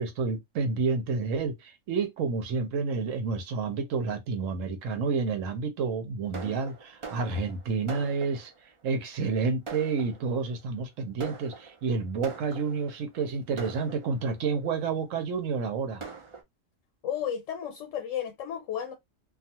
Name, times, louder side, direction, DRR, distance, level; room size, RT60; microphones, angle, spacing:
voice 1, 0.0-8.5 8.8-16.0, right 4 dB, 85° right, 1.1 m, -29 dB
Fireworks, 6.3-8.7 9.3-9.4 9.7-10.5 11.2-13.0 13.6-14.5 15.2-15.3 15.6-15.7 16.0-16.4, right 4 dB, 55° right, 0.3 m, -43 dB
voice 2, 17.0-18.9, left 9 dB, 80° left, 1.0 m, -33 dB
2.4 x 2.3 x 2.8 m
omnidirectional pair, 1.3 m